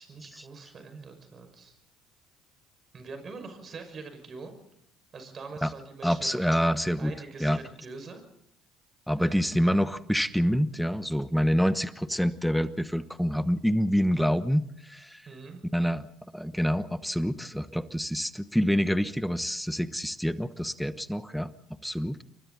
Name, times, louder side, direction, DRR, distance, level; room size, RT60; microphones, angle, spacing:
voice 1, 0.0-1.8 2.9-4.5 5.1-6.7 7.0-8.2 9.2-9.4 15.3-15.6, right 4 dB, 40° right, 7 dB, 5.8 m, -44 dB
voice 2, 6.0-7.1 7.4-7.6 9.1-15.3 15.7-16.1 16.3-21.5 21.8-22.2, equal, ahead, 14 dB, 1.1 m, -27 dB
29.0 x 23.5 x 4.1 m, 0.71 s
hypercardioid pair, 60°, 0 cm